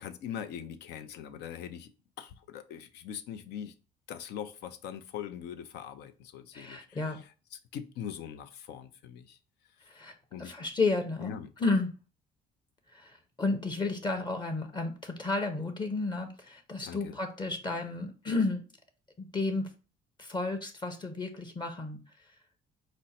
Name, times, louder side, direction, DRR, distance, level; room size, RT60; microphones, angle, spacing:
voice 1, 0.0-1.9 2.2-3.7 4.1-7.2 7.5-9.4 10.3-10.5 11.2-11.5 16.8-17.2, left 9 dB, 80° left, 9 dB, 0.6 m, -42 dB
voice 2, 6.5-7.2 9.9-11.9 12.9-18.6 19.2-19.7 20.2-22.3, left 3 dB, 25° left, 5 dB, 0.7 m, -32 dB
5.2 x 2.1 x 4.1 m, 0.34 s
cardioid pair, 110°, 17 cm